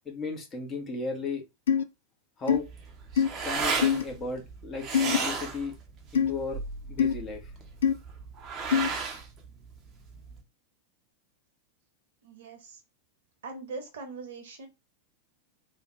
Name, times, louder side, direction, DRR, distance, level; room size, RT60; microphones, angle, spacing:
voice 1, 0.0-1.4 2.4-2.7 3.4-5.7 6.1-6.6 6.9-7.5, left 4 dB, 25° left, 1.2 m, -35 dB
sound 1, 1.7-1.8 2.5-2.6 3.2-3.3 3.8-4.0 4.9-5.2 6.2-6.3 7.0-7.1 7.8-7.9 8.7-8.9, left 8 dB, 65° left, 0.4 m, -23 dB
sound 2, 2.5-10.4, right 5 dB, 25° right, 0.9 m, -34 dB
voice 2, 12.2-12.8 13.4-14.7, right 3 dB, 60° right, 1.1 m, -41 dB
3.5 x 2.4 x 3.1 m
figure-of-eight pair, 90°, 0 cm